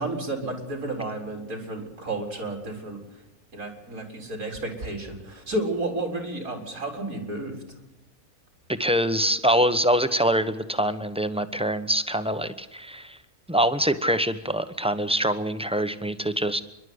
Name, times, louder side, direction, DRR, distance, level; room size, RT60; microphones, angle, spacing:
voice 1, 0.0-3.2 3.5-7.6, right 2 dB, 85° right, 2 dB, 4.6 m, -32 dB
voice 2, 8.7-13.2 13.5-16.6, equal, 5° right, 10 dB, 1.0 m, -24 dB
28.5 x 12.0 x 9.6 m, 0.94 s
omnidirectional pair, 1.5 m